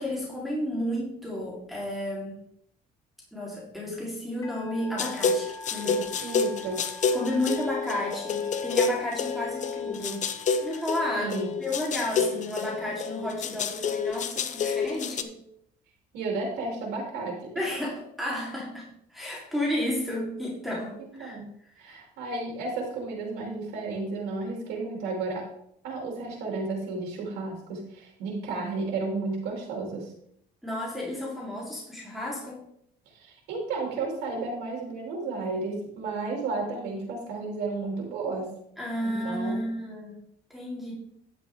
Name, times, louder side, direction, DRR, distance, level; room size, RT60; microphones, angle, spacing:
voice 1, 0.0-2.4 3.3-6.4 7.1-10.3 10.6-11.3 11.6-15.4 17.6-21.4 30.6-32.6 38.8-40.2 40.5-40.9, left 1 dB, ahead, -6 dB, 4.0 m, -32 dB
Musical instrument, 4.4-12.0, equal, 20° left, 2.4 m, -45 dB
sound 1, 5.0-15.2, left 5 dB, 45° left, 0.9 m, -29 dB
voice 2, 6.2-6.8 11.2-11.5 16.1-17.7 21.0-21.5 21.8-25.5 25.8-30.1 33.1-38.5 39.0-39.6, right 3 dB, 90° right, -1 dB, 3.6 m, -33 dB
11.5 x 8.2 x 3.8 m, 0.70 s
cardioid pair, 110°, 17 cm